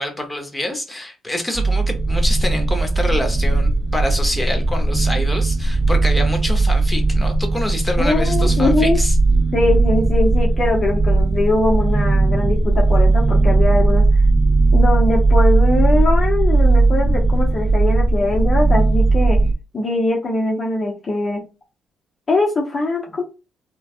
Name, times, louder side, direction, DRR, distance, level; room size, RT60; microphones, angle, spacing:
voice 1, 0.0-9.1, left 1 dB, 10° left, 0.9 m, -26 dB
sound 1, 1.5-19.5, right 2 dB, 25° right, 0.3 m, -17 dB
voice 2, 8.0-9.0 9.5-14.0 14.7-19.4 19.7-21.4 22.3-23.2, left 2 dB, 40° left, 0.9 m, -21 dB
3.1 x 2.2 x 2.5 m
cardioid pair, 90°, 0 cm